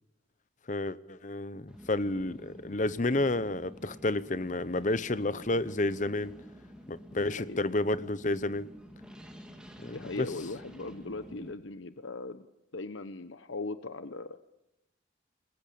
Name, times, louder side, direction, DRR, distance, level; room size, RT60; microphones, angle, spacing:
voice 1, 0.7-6.4 6.9-8.7 9.8-10.3, left 2 dB, 40° left, 0.9 m, -30 dB
sound 1, 1.7-11.5, equal, 5° right, 3.1 m, -50 dB
voice 2, 7.2-7.6 9.9-12.5 12.7-14.4, left 3 dB, 80° left, 1.0 m, -39 dB
28.5 x 21.5 x 8.6 m
head